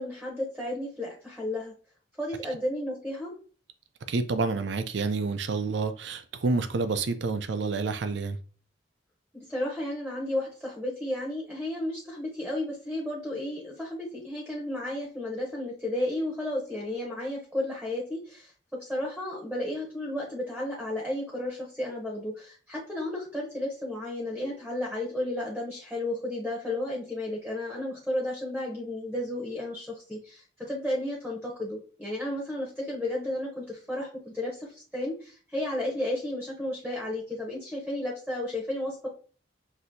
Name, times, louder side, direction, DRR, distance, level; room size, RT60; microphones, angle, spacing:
voice 1, 0.0-1.7 2.2-3.3 9.3-18.5 18.8-39.1, left 1 dB, ahead, -3 dB, 0.8 m, -33 dB
voice 2, 4.1-8.4, right 4 dB, 70° right, 10 dB, 0.5 m, -28 dB
6.0 x 2.7 x 2.6 m, 0.40 s
head